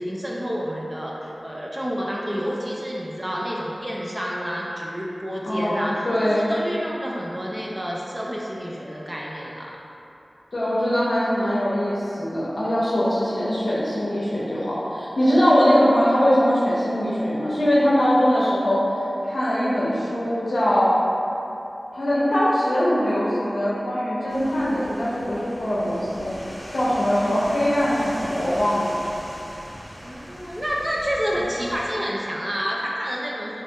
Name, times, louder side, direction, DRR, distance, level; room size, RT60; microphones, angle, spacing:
voice 1, 0.0-9.7 30.0-33.6, equal, 25° right, -4 dB, 0.3 m, -29 dB
voice 2, 5.4-6.5 10.5-18.9 19.2-20.9 21.9-26.3 26.7-29.0, equal, 85° left, -9 dB, 0.5 m, -21 dB
sound 1, 24.3-31.9, equal, 15° left, 0.7 m, -39 dB
3.2 x 2.1 x 2.8 m, 2.9 s
wide cardioid pair, 50°, 0 cm